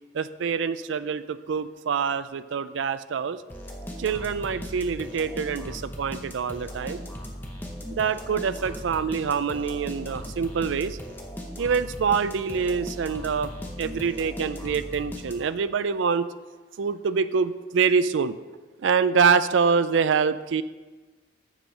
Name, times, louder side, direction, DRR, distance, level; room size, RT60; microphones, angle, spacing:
voice 1, 0.1-3.4 4.0-7.0 7.9-11.0 11.6-13.5 13.8-16.3 16.8-18.3 18.8-20.6, right 6 dB, 75° right, 14 dB, 0.4 m, -25 dB
sound 1, 3.5-15.7, equal, 10° left, 0.8 m, -38 dB
7.2 x 5.5 x 6.5 m, 1.3 s
head